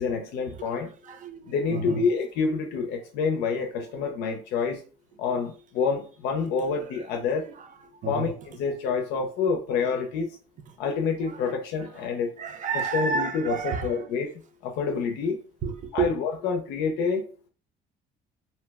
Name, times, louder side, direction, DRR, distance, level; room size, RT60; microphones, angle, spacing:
voice 1, 0.0-0.9 1.5-4.8 5.2-7.5 8.1-10.3 10.8-12.4 12.7-15.4 15.9-17.5, left 5 dB, 90° left, 0.5 m, -28 dB
voice 2, 1.1-2.0 8.0-8.3 12.4-14.1 15.6-16.1, right 6 dB, 50° right, 0.6 m, -30 dB
2.7 x 2.0 x 3.4 m
cardioid pair, 110°, 17 cm